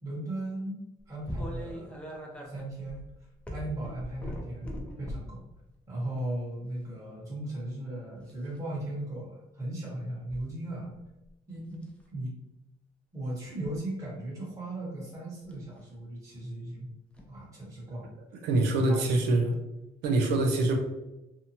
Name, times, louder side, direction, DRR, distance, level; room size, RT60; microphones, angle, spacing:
voice 1, 0.0-1.9 2.4-3.0 3.5-5.4 5.9-11.0 11.5-12.3 13.1-16.9 17.3-18.1 18.6-19.1, right 1 dB, 20° right, -7 dB, 1.1 m, -37 dB
sound 1, 1.3-5.4 6.1-6.4 8.2-8.6 10.3-10.4 10.9-11.3 11.7-12.0 13.4-13.8 15.4-15.6 17.1-17.3 18.8-18.9 19.5-19.6, equal, 5° left, 0.5 m, -40 dB
voice 2, 18.3-19.5 20.0-20.8, right 2 dB, 85° right, 3 dB, 0.6 m, -25 dB
2.7 x 2.2 x 2.8 m, 0.93 s
cardioid pair, 110°, 17 cm